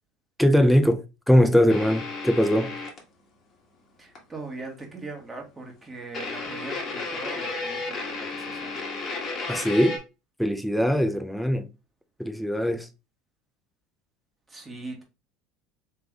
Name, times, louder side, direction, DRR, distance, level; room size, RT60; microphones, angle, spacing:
voice 1, 0.4-2.7 9.5-10.0 10.4-11.7 12.2-12.9, equal, ahead, 0.6 m, -21 dB
sound 1, 1.7-3.0 4.1-4.2 4.6-4.7 6.1-10.0, left 3 dB, 40° left, 1.7 m, -33 dB
voice 2, 4.0-8.8 14.5-15.0, right 3 dB, 15° right, 1.7 m, -40 dB
3.4 x 3.3 x 3.6 m
supercardioid pair, 95°, 0 cm